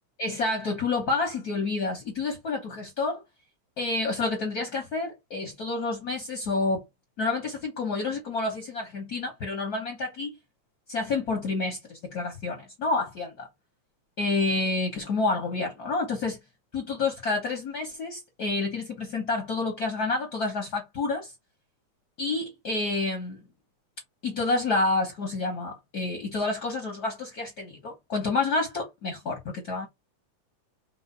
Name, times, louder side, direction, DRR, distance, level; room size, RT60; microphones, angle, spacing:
voice 1, 0.2-3.2 3.8-6.8 7.2-10.3 10.9-13.5 14.2-16.4 16.7-21.3 22.2-23.4 24.2-29.9, left 3 dB, 60° left, 1.0 m, -29 dB
4.8 x 2.2 x 4.0 m
omnidirectional pair, 3.5 m